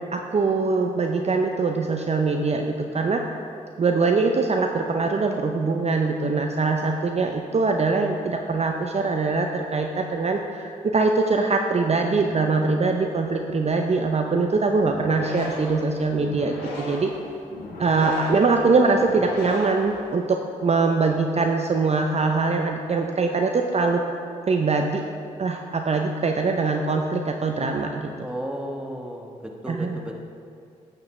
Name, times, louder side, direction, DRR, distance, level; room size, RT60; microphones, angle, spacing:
voice 1, 0.0-3.2 3.8-17.1 17.8-24.0 24.5-25.0 25.4-28.1 29.7-30.0, right 3 dB, 40° right, 3 dB, 0.6 m, -23 dB
sound 1, 14.8-20.4, left 1 dB, 90° left, 1.3 m, -37 dB
voice 2, 28.2-30.1, equal, 5° right, 1 dB, 1.3 m, -34 dB
10.5 x 6.6 x 3.2 m, 2.4 s
supercardioid pair, 45°, 16 cm